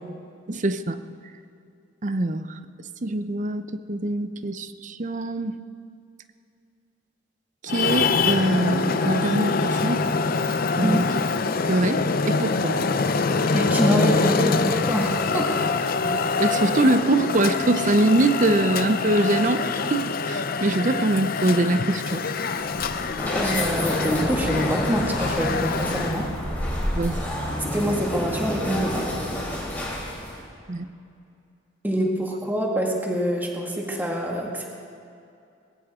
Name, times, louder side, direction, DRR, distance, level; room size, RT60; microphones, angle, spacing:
voice 1, 0.5-1.0 2.0-2.6 3.0-3.6 3.9-5.6 7.6-10.0 10.8-11.1 11.7-12.8 16.0-19.6 19.9-22.2 26.9-27.2 30.7-30.9, right 2 dB, 40° right, 11 dB, 0.7 m, -23 dB
Traffic noise roadway noise, 7.7-26.3, left 4 dB, 50° left, 0.6 m, -25 dB
voice 2, 13.5-15.5 23.3-26.3 27.7-29.0 31.8-34.7, equal, 10° right, -1 dB, 1.9 m, -25 dB
sound 1, 22.6-30.4, equal, 10° left, 4.6 m, -29 dB
20.5 x 18.5 x 3.7 m, 2.4 s
head